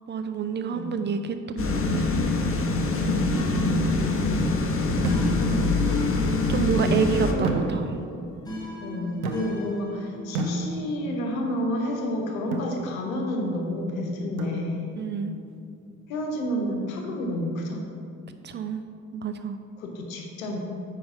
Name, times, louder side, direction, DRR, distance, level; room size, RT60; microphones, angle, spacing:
voice 1, 0.1-2.4 6.5-7.9 15.0-15.4 18.4-19.6, right 6 dB, 30° right, 8 dB, 0.4 m, -28 dB
sound 1, 1.6-7.3, left 2 dB, 30° left, 0.9 m, -24 dB
sound 2, 3.3-10.2, left 1 dB, 10° left, 1.7 m, -37 dB
sound 3, 5.0-5.7 7.4-8.2 9.2-9.8 10.3-11.1 12.5-12.8 14.4-15.0, right 2 dB, 80° right, 0.7 m, -31 dB
voice 2, 5.2-6.1 6.5-6.8 7.3-7.5 8.8-14.9 16.1-17.9 19.8-20.6, left 1 dB, 75° left, 1 dB, 1.0 m, -30 dB
9.4 x 3.3 x 5.7 m, 2.5 s
figure-of-eight pair, 40°, 42 cm